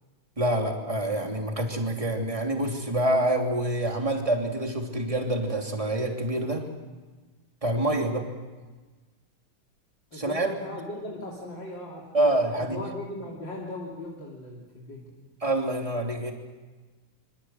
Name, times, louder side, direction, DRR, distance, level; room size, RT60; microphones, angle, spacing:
voice 1, 0.4-6.7 7.6-8.2 10.1-10.5 12.1-12.8 15.4-16.3, right 1 dB, 15° right, 2 dB, 3.2 m, -26 dB
voice 2, 10.1-15.2, left 1 dB, 60° left, -2 dB, 4.0 m, -39 dB
26.5 x 25.5 x 7.9 m, 1.3 s
omnidirectional pair, 2.2 m